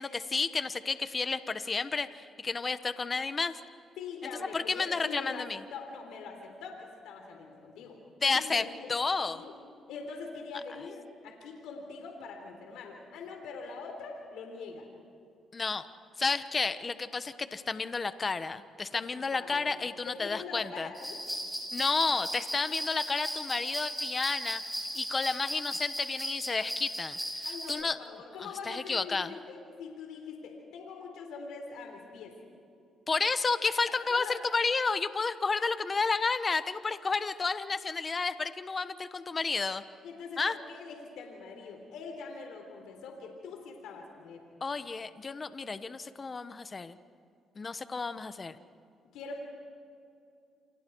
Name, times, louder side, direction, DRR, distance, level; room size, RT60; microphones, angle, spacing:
voice 1, 0.0-3.6 4.5-5.6 8.2-9.4 15.5-15.9 16.2-20.9 21.7-24.6 24.9-28.0 28.4-29.3 33.1-39.8 40.4-40.6 44.6-47.0 47.6-48.6, left 4 dB, 30° left, 12 dB, 1.1 m, -31 dB
voice 2, 4.0-5.4 5.7-8.0 8.2-8.9 9.3-9.5 9.9-14.9 18.9-19.1 19.3-19.7 20.0-21.5 27.4-32.4 34.1-34.4 40.0-44.4 49.1-49.4, left 4 dB, 90° left, 3 dB, 3.6 m, -43 dB
sound 1, 20.9-27.7, equal, ahead, 7.9 m, -37 dB
28.5 x 28.5 x 4.7 m, 2.5 s
cardioid pair, 90°, 0 cm